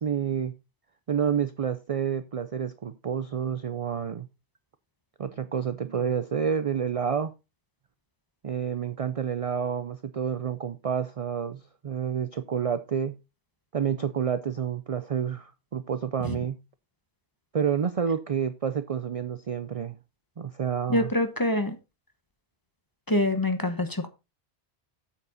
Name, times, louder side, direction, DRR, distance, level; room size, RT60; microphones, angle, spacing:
voice 1, 0.0-0.5 1.1-4.3 5.2-7.3 8.4-13.2 13.7-16.6 17.5-20.0 20.4-21.1, right 7 dB, 45° right, 0.5 m, -29 dB
voice 2, 20.9-21.8 23.1-24.1, left 1 dB, 20° left, 1.0 m, -25 dB
8.5 x 7.3 x 3.9 m
omnidirectional pair, 1.1 m